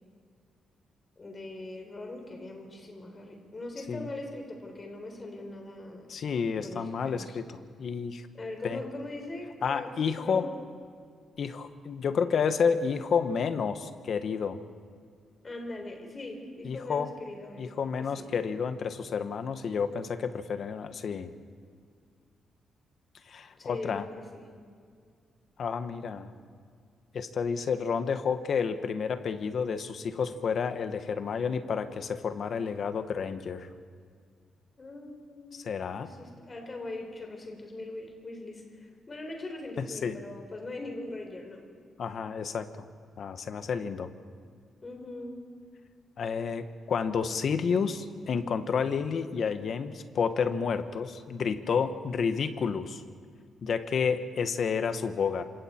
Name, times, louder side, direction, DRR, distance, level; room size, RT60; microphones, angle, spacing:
voice 1, 1.2-6.1 6.6-7.4 8.3-9.9 10.2-10.5 15.4-18.3 23.6-24.1 24.3-24.5 34.8-35.7 36.0-41.7 44.8-45.4, left 2 dB, 25° left, 3 dB, 3.9 m, -41 dB
voice 2, 6.1-8.3 8.6-8.8 9.6-10.5 11.4-14.6 16.6-17.1 17.6-21.3 23.3-24.1 25.6-26.3 27.1-33.7 35.5-36.1 39.8-40.2 42.0-42.9 43.2-44.1 46.2-53.0 53.6-55.4, left 6 dB, 50° left, 9 dB, 1.3 m, -30 dB
27.5 x 26.0 x 4.5 m, 2.1 s
cardioid pair, 145°, 0 cm